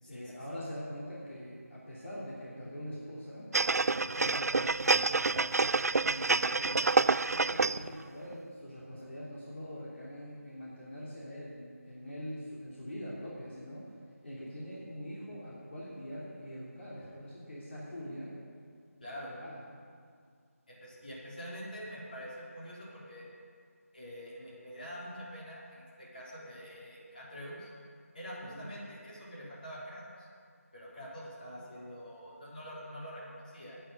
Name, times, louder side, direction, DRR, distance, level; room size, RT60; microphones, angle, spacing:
voice 1, 0.1-3.5 3.9-6.9 7.2-13.8 14.2-18.3 19.3-19.6 28.5-28.7, equal, 50° left, -8 dB, 3.1 m, -43 dB
sound 1, 3.5-7.9 8.3-8.4, right 3 dB, 85° right, 0.3 m, -28 dB
voice 2, 19.0-19.4 20.7-23.3 23.9-27.7 28.1-30.3 30.7-33.8, equal, 35° left, -8 dB, 3.9 m, -45 dB
9.2 x 8.9 x 9.4 m, 2.1 s
figure-of-eight pair, 175°, 8 cm